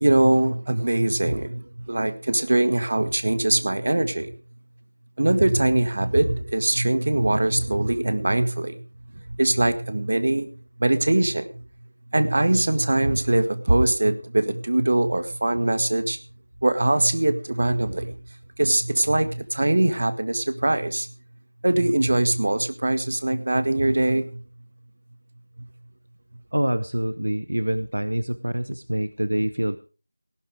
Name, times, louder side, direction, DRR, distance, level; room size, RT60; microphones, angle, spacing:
voice 1, 0.0-4.3 5.2-8.8 9.4-10.5 10.8-11.5 12.1-16.2 16.6-18.1 18.6-21.1 21.6-24.4, right 2 dB, 55° right, 11 dB, 1.8 m, -22 dB
voice 2, 26.5-29.8, right 1 dB, 80° right, 14 dB, 1.0 m, -26 dB
18.0 x 10.5 x 4.9 m, 0.35 s
figure-of-eight pair, 170°, 0 cm